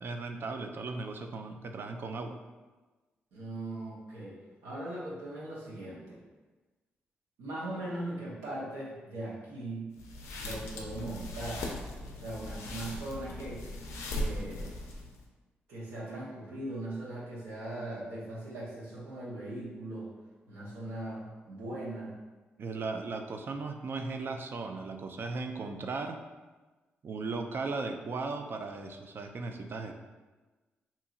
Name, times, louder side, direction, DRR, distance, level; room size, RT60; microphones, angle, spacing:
voice 1, 0.0-2.4 22.6-26.2 27.0-30.0, right 3 dB, 50° right, 5 dB, 0.3 m, -37 dB
voice 2, 3.3-6.2 7.4-9.9 10.3-11.6 12.1-13.6 14.1-14.7 15.7-20.1 20.5-22.1, right 1 dB, 85° right, -7 dB, 0.8 m, -39 dB
sound 1, 10.0-15.2, left 1 dB, 80° left, 0.4 m, -39 dB
2.7 x 2.7 x 2.4 m, 1.2 s
hypercardioid pair, 45°, 5 cm